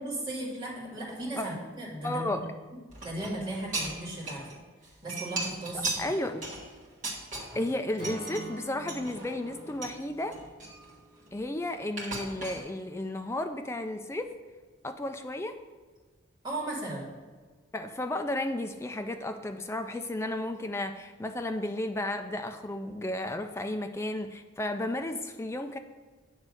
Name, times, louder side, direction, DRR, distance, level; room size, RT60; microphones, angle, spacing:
voice 1, 0.0-2.5 3.0-4.6 5.0-6.0 16.4-17.1, right 1 dB, 25° right, -6 dB, 2.0 m, -36 dB
voice 2, 2.0-2.5 6.0-6.4 7.5-10.4 11.3-14.3 14.8-15.6 17.7-25.8, left 1 dB, 15° left, 6 dB, 0.3 m, -33 dB
sound 1, 2.9-4.6 4.8-7.7 8.0-8.4 8.9-10.0 10.3-11.5 12.0-12.6, right 3 dB, 40° right, 1.6 m, -37 dB
Acoustic guitar / Strum, 8.0-12.1, right 1 dB, 40° left, 1.7 m, -45 dB
9.1 x 3.2 x 6.2 m, 1.4 s
head